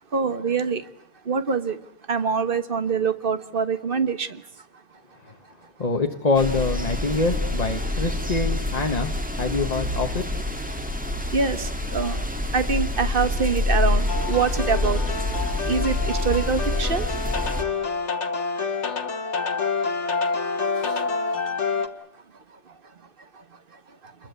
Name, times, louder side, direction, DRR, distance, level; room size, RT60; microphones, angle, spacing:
voice 1, 0.1-0.9 1.2-1.8 2.1-4.4 11.3-12.2 12.5-15.0 15.7-17.1 20.8-21.4 22.7-22.8 23.3-23.4 24.0-24.1, right 5 dB, 35° right, 1.3 m, -25 dB
voice 2, 5.8-9.1 9.3-10.3, left 3 dB, 25° left, 1.3 m, -25 dB
sound 1, 6.3-17.6, left 2 dB, 5° right, 1.8 m, -26 dB
sound 2, 14.1-21.9, left 4 dB, 40° left, 1.7 m, -28 dB
29.0 x 21.5 x 8.3 m
omnidirectional pair, 1.9 m